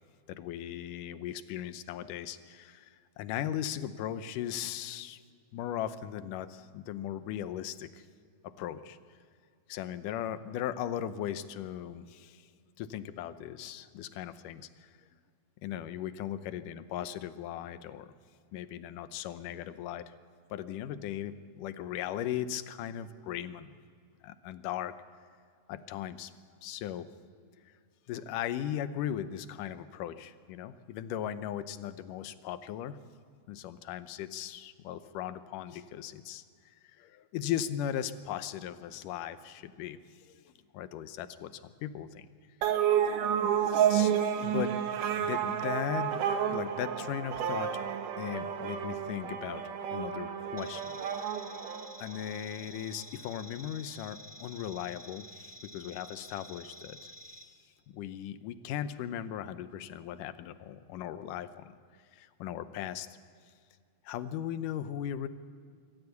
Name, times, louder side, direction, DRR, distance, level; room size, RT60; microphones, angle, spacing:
voice 1, 0.3-5.2 5.5-8.1 8.4-9.0 9.7-12.5 12.8-14.9 15.6-18.1 18.5-20.1 20.5-23.8 24.2-24.9 25.7-26.3 26.6-27.1 27.6-27.7 28.1-33.0 33.5-40.4 40.7-42.3 42.6-42.7 43.9-44.1 44.4-44.8 45.2-47.7 48.2-51.3 52.0-57.1 57.9-61.7 62.1-63.1 64.0-65.3, left 10 dB, 85° left, 12 dB, 2.4 m, -38 dB
sound 1, 42.6-52.4, right 9 dB, 80° right, 2.8 m, -30 dB
sound 2, 50.6-57.4, equal, 20° right, 0.5 m, -50 dB
25.0 x 14.5 x 8.2 m, 2.1 s
omnidirectional pair, 3.6 m